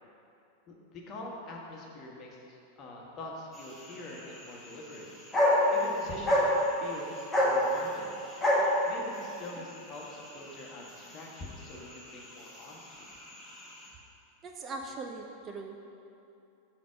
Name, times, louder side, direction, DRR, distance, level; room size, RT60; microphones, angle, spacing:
voice 1, 0.7-5.1 5.7-6.5 6.8-8.1 8.9-13.1, left 2 dB, 35° left, -1 dB, 1.2 m, -44 dB
sound 1, 3.5-13.9, left 1 dB, 10° left, 1.5 m, -31 dB
voice 2, 14.4-15.8, right 3 dB, 25° right, 3 dB, 0.5 m, -40 dB
6.3 x 4.2 x 6.2 m, 2.7 s
figure-of-eight pair, 90°, 0 cm